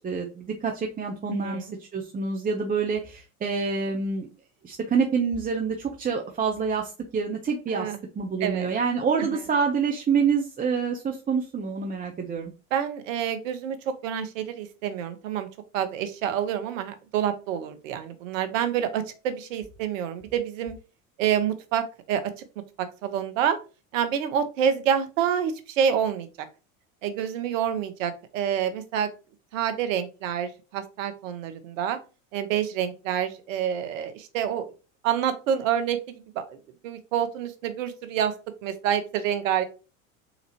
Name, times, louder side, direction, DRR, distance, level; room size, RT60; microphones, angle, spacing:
voice 1, 0.0-1.6 1.9-4.3 4.6-7.9 8.2-12.5, right 5 dB, 20° right, 2 dB, 0.8 m, -27 dB
voice 2, 1.3-1.7 7.7-8.0 8.4-8.7 9.3-9.4 12.7-13.8 14.0-15.5 15.7-20.8 21.2-22.4 22.8-23.6 23.9-26.5 27.0-29.1 29.5-32.0 32.3-34.7 35.0-36.6 36.8-38.3 38.6-39.6, right 9 dB, 70° right, 11 dB, 1.0 m, -27 dB
4.1 x 4.0 x 2.9 m, 0.32 s
hypercardioid pair, 85°, 40 cm